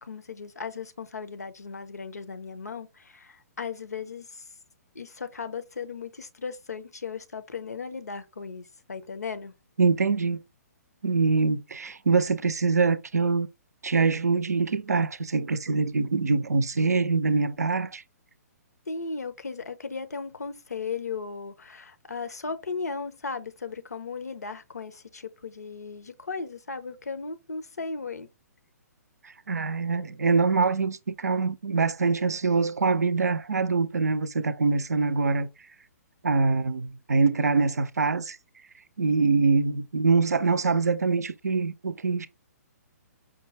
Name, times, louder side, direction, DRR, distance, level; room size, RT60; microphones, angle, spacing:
voice 1, 0.0-4.4 4.9-9.5 18.9-28.3, left 5 dB, 70° left, 0.7 m, -36 dB
voice 2, 9.8-10.4 11.0-13.5 13.8-18.0 29.5-35.5 36.2-38.4 39.0-42.3, right 4 dB, 70° right, 0.5 m, -24 dB
5.2 x 2.2 x 3.3 m
figure-of-eight pair, 125°, 9 cm